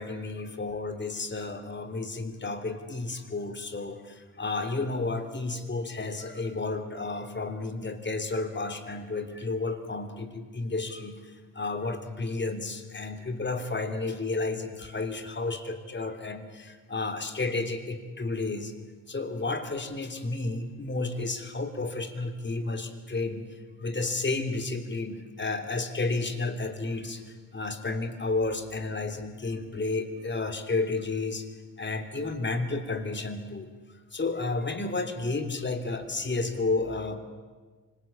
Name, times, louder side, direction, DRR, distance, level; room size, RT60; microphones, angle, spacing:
voice 1, 0.0-11.2 11.5-18.7 19.1-23.5 23.8-27.2 27.5-31.5 31.8-33.7 34.1-37.2, left 3 dB, 30° left, 7 dB, 3.3 m, -32 dB
25.5 x 20.0 x 8.8 m, 1.4 s
cardioid pair, 65°, 34 cm